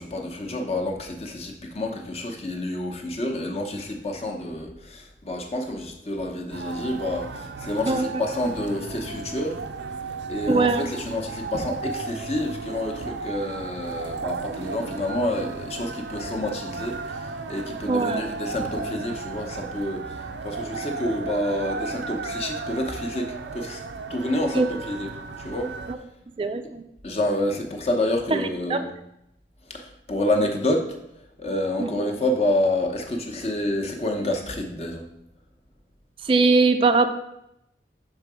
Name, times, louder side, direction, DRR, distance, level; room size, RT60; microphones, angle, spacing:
voice 1, 0.0-9.6 10.3-20.2 20.4-23.8 24.1-25.1 25.4-25.7 27.0-28.8 29.7-30.9 31.4-35.0, left 1 dB, 35° left, 3 dB, 0.8 m, -28 dB
sound 1, 6.5-25.9, right 4 dB, 85° right, 0.5 m, -34 dB
voice 2, 10.5-10.9 17.9-18.2 24.5-24.7 25.9-26.0 26.4-26.8 28.7-28.9 31.8-31.9 36.2-37.1, right 3 dB, 30° right, 8 dB, 0.4 m, -21 dB
6.4 x 3.7 x 4.8 m, 0.81 s
head